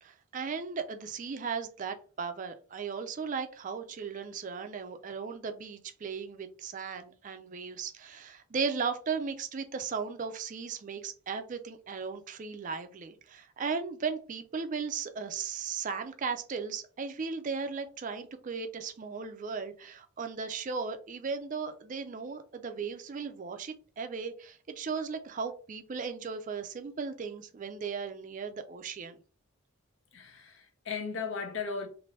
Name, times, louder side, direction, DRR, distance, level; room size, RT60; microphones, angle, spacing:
voice 1, 0.0-29.2, right 5 dB, 35° right, 0.4 m, -36 dB
voice 2, 30.1-31.9, left 5 dB, 60° left, 0.7 m, -36 dB
2.7 x 2.5 x 3.1 m
head